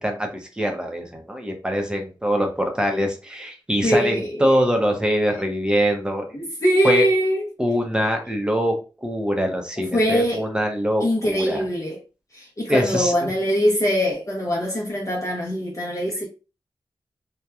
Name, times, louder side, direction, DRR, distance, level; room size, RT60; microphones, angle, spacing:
voice 1, 0.0-6.4 6.8-7.0 7.6-8.7 9.0-11.6 12.7-13.3, equal, 10° right, 0.7 m, -23 dB
voice 2, 3.8-4.5 5.3-5.4 6.3-7.5 9.9-10.5 11.0-12.0 12.3-16.3, equal, 35° left, 0.7 m, -22 dB
2.8 x 2.2 x 2.3 m
wide cardioid pair, 100°, 9 cm